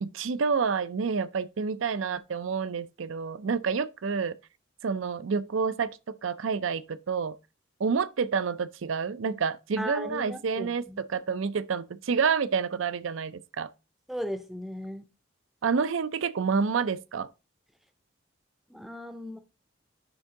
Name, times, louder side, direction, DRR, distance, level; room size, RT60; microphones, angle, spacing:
voice 1, 0.0-4.4 4.8-7.4 7.8-13.7 15.6-17.3, right 5 dB, 85° right, 0.5 m, -28 dB
voice 2, 9.8-11.0 14.1-15.0 18.7-19.4, equal, ahead, 0.5 m, -36 dB
9.8 x 3.6 x 3.8 m
head